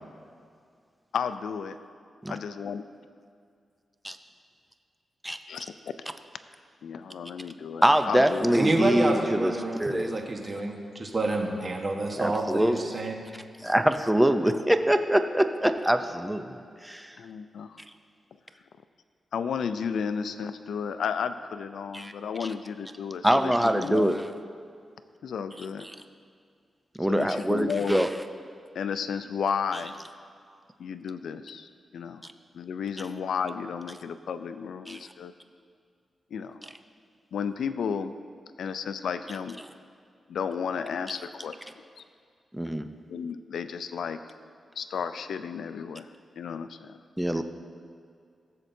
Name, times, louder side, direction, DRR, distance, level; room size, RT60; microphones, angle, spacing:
voice 1, 1.1-1.8 2.3-2.8 5.5-5.7 6.8-8.6 17.2-17.8 19.3-24.2 25.2-25.9 27.1-28.1 28.7-29.9 30.8-32.2 32.5-35.3 36.3-36.6 37.3-38.1 38.6-39.6 40.3-41.5 43.1-44.2 44.8-46.1 46.3-47.0 47.3-47.4, left 6 dB, 85° left, 10 dB, 0.4 m, -33 dB
voice 2, 7.8-10.1 12.2-12.9 13.6-17.2 21.9-22.1 22.4-22.5 23.2-24.2 27.0-28.1 34.9-35.0 42.5-42.9 47.2-47.4, right 1 dB, 5° right, 8 dB, 0.5 m, -24 dB
voice 3, 8.5-13.1, right 2 dB, 40° right, 1 dB, 1.2 m, -28 dB
16.5 x 7.4 x 2.7 m, 2.2 s
cardioid pair, 90°, 0 cm